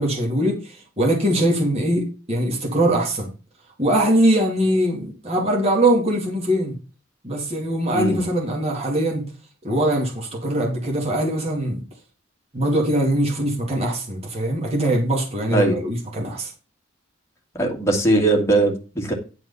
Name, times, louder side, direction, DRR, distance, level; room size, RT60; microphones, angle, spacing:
voice 1, 0.0-3.3 3.8-6.8 7.2-9.2 9.6-11.8 12.5-16.5, right 1 dB, 30° right, -1 dB, 2.3 m, -22 dB
voice 2, 7.9-8.2 15.5-15.8 17.6-19.1, right 2 dB, 15° left, 0 dB, 2.3 m, -20 dB
10.5 x 4.7 x 5.6 m, 0.34 s
head